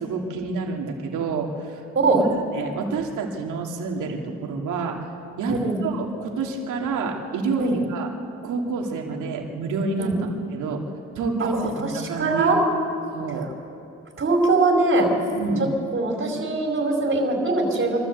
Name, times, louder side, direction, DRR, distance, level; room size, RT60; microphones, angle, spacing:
voice 1, 0.0-1.8 2.5-5.0 5.4-8.1 8.4-10.1 10.5-10.8 11.1-12.5 13.1-13.5 15.3-15.7, right 4 dB, 80° right, 1 dB, 2.8 m, -28 dB
voice 2, 5.5-5.8 7.6-7.8 10.0-10.1 11.4-12.6 14.2-15.1 15.9-18.0, right 3 dB, 40° right, 1 dB, 4.7 m, -22 dB
24.5 x 13.5 x 8.2 m, 2.7 s
cardioid pair, 90°, 30 cm